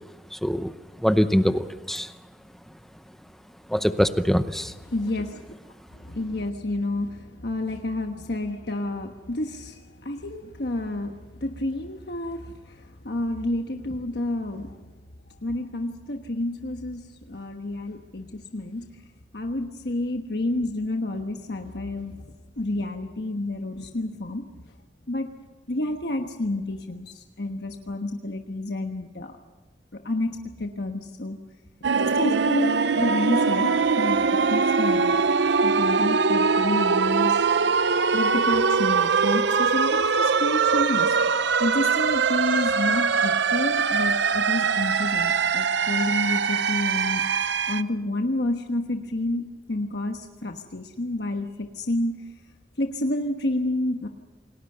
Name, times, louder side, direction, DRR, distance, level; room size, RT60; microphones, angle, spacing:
voice 1, 0.3-2.1 3.7-4.7, equal, ahead, 10 dB, 0.7 m, -23 dB
voice 2, 4.9-14.8 15.4-18.8 19.3-24.4 25.1-25.3 25.7-29.4 30.0-31.4 32.0-34.2 34.5-35.2 35.6-37.6 38.1-41.2 41.6-47.2 47.7-52.2 52.8-54.1, left 1 dB, 60° left, 4 dB, 1.3 m, -29 dB
sound 1, 31.8-47.8, right 5 dB, 75° right, 0.7 m, -22 dB
28.5 x 19.0 x 6.8 m, 1.2 s
head